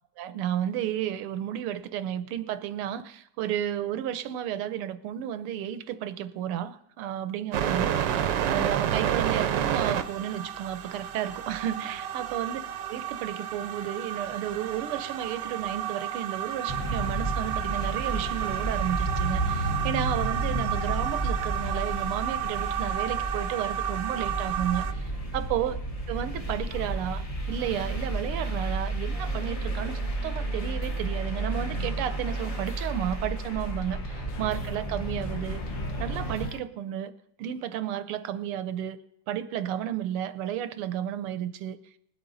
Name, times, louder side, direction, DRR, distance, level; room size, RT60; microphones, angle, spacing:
voice 1, 0.2-12.6 12.9-25.8 26.1-35.6 36.0-37.1 37.4-39.0 39.3-41.8, right 10 dB, 85° right, 12 dB, 1.7 m, -32 dB
sound 1, 7.5-24.9, right 9 dB, 70° right, 1.3 m, -31 dB
sound 2, 16.7-36.5, right 2 dB, 30° left, 0.7 m, -32 dB
sound 3, 29.2-36.6, left 6 dB, 60° left, 1.2 m, -47 dB
20.5 x 8.1 x 3.9 m, 0.71 s
omnidirectional pair, 2.4 m